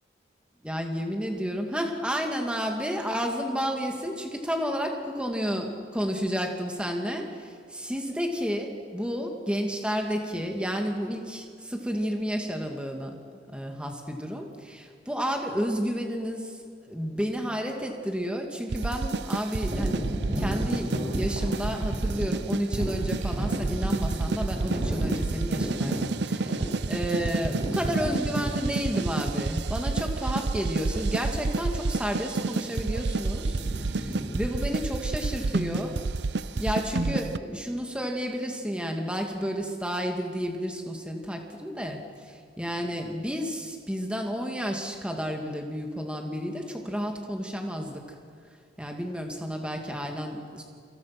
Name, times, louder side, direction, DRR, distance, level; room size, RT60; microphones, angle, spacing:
voice 1, 0.6-16.6 16.8-36.0 36.6-48.0 48.8-50.6, equal, 5° right, 2 dB, 2.3 m, -31 dB
sound 1, 18.7-37.4, right 3 dB, 60° right, 0.6 m, -30 dB
sound 2, 19.6-29.4 30.1-30.2 30.8-31.1 31.3-31.6 32.2-32.8 33.0-36.5, equal, 35° right, 6.8 m, -35 dB
29.0 x 26.5 x 6.1 m, 2.2 s
head